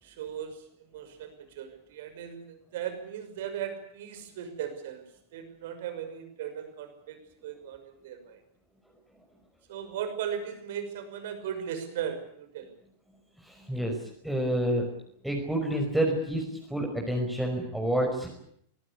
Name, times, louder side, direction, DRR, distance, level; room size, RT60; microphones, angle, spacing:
voice 1, 0.0-8.4 9.7-12.7, right 9 dB, 55° right, 9 dB, 6.0 m, -37 dB
voice 2, 13.4-14.9 15.2-18.3, right 1 dB, 5° right, 1 dB, 5.5 m, -29 dB
24.5 x 20.0 x 8.4 m, 0.67 s
figure-of-eight pair, 90°, 0 cm